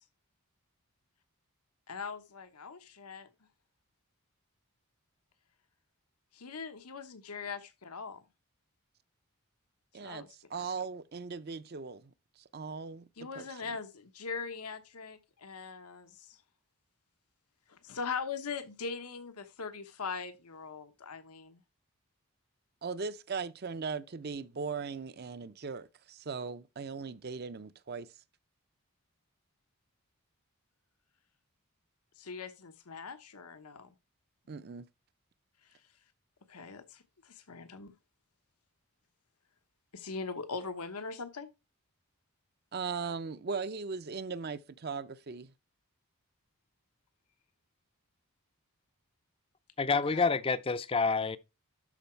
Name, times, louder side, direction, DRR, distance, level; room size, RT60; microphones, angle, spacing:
voice 1, 1.9-3.3 6.3-8.2 9.9-10.3 13.2-16.4 17.7-21.6 32.2-33.9 36.5-37.9 39.9-41.5 50.1-50.3, left 5 dB, 90° left, 1.2 m, -41 dB
voice 2, 9.9-12.1 12.5-13.4 22.8-28.1 34.5-34.9 42.7-45.5, right 5 dB, 45° right, 0.5 m, -38 dB
voice 3, 49.8-51.4, left 4 dB, 25° left, 0.4 m, -28 dB
12.5 x 4.8 x 4.5 m
head